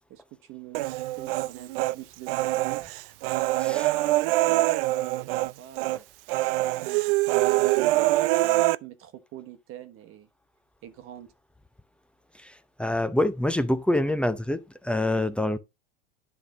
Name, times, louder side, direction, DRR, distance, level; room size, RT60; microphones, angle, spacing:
voice 1, 0.1-0.8 1.1-2.8 3.6-6.1 6.6-7.0 7.3-10.3 10.8-11.3, right 12 dB, 45° right, 1.2 m, -44 dB
Human voice, 0.7-1.9 2.3-5.5 5.8-6.0 6.3-8.8, right 18 dB, 60° right, 0.5 m, -24 dB
voice 2, 3.6-3.9 12.4-15.6, left 1 dB, 5° left, 0.6 m, -26 dB
10.5 x 3.6 x 4.8 m
hypercardioid pair, 100°, 31 cm